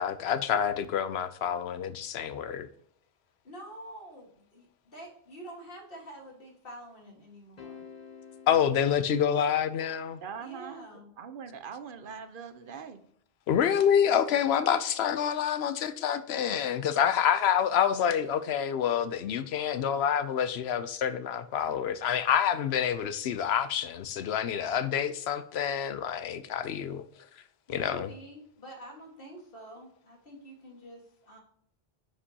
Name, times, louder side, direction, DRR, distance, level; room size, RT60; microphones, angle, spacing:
voice 1, 0.0-2.7 8.5-10.2 13.5-27.0 27.7-28.1, left 8 dB, 90° left, 12 dB, 0.9 m, -27 dB
voice 2, 3.4-7.9 10.4-11.1 27.7-31.4, right 1 dB, 60° left, 0 dB, 2.0 m, -47 dB
sound 1, 7.6-10.0, left 6 dB, 45° left, 1.0 m, -50 dB
voice 3, 10.2-10.9 11.2-13.0, right 6 dB, 60° right, 10 dB, 0.9 m, -42 dB
9.7 x 5.2 x 2.8 m, 0.67 s
omnidirectional pair, 1.0 m